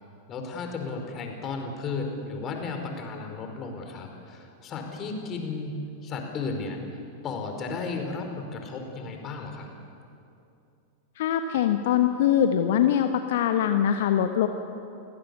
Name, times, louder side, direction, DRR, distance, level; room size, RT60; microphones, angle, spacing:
voice 1, 0.3-9.7, left 4 dB, 30° left, 4 dB, 4.8 m, -34 dB
voice 2, 11.2-14.5, left 10 dB, 55° left, 8 dB, 1.1 m, -23 dB
28.5 x 18.5 x 8.4 m, 2.6 s
figure-of-eight pair, 90°, 0 cm